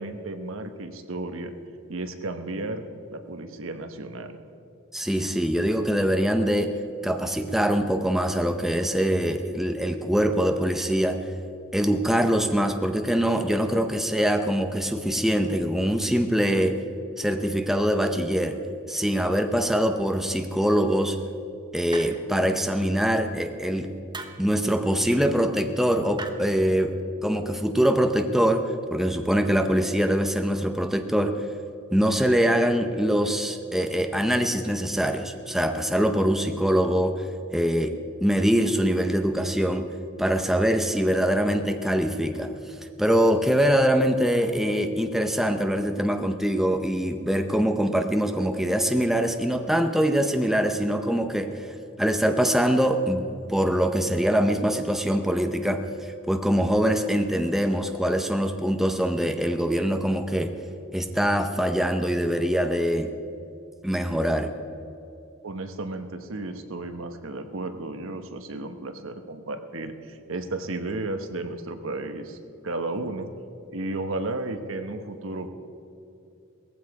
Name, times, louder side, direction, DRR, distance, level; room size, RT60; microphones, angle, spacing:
voice 1, 0.0-1.5 1.9-4.4 65.4-72.4 72.6-73.3 73.7-75.5, right 2 dB, 70° right, 8 dB, 1.1 m, -33 dB
voice 2, 4.9-6.7 7.0-11.2 11.7-16.8 17.2-18.6 18.9-21.2 21.7-23.9 24.4-27.0 27.2-31.4 31.9-37.3 37.5-39.9 40.2-60.5 60.9-63.1 63.8-64.5, equal, ahead, 6 dB, 0.6 m, -23 dB
sound 1, 21.9-22.5 24.1-24.5 26.2-26.3, right 3 dB, 20° right, 1.0 m, -38 dB
18.0 x 15.0 x 4.8 m, 2.8 s
head